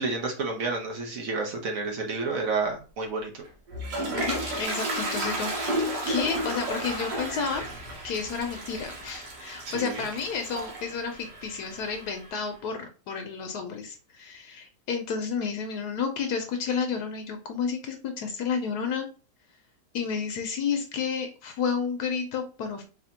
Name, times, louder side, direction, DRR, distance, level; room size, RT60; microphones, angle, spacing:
voice 1, 0.0-3.4 9.6-10.0, right 3 dB, 60° right, 1 dB, 1.1 m, -30 dB
Toilet flush, 3.4-12.3, right 1 dB, 85° right, 1.5 m, -33 dB
voice 2, 4.1-7.6 8.0-19.1 19.9-22.8, left 6 dB, 75° left, 5 dB, 1.1 m, -31 dB
4.2 x 2.7 x 2.8 m, 0.34 s
omnidirectional pair, 1.8 m